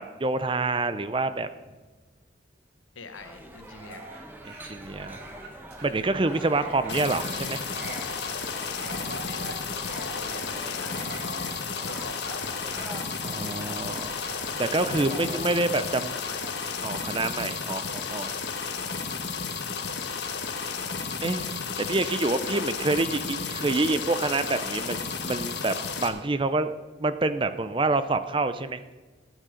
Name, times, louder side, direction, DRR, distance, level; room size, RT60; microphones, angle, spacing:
voice 1, 0.0-1.5 4.5-5.2 5.8-7.7 13.2-14.2 14.6-16.1 16.8-18.3 21.2-21.4 21.8-25.0 25.2-26.7 27.0-28.8, right 2 dB, 25° right, 12 dB, 0.5 m, -27 dB
voice 2, 2.9-4.1 6.5-6.7 8.9-12.6 15.2-16.4 19.0-19.2 22.5-22.8, left 4 dB, 85° left, 8 dB, 1.2 m, -44 dB
sound 1, 3.1-15.5, right 1 dB, 10° right, 0.9 m, -45 dB
Dog, 3.6-16.6, right 2 dB, 50° right, 2.1 m, -45 dB
sound 2, 6.9-26.1, left 5 dB, 60° left, 1.2 m, -33 dB
14.0 x 9.2 x 5.0 m, 1.3 s
head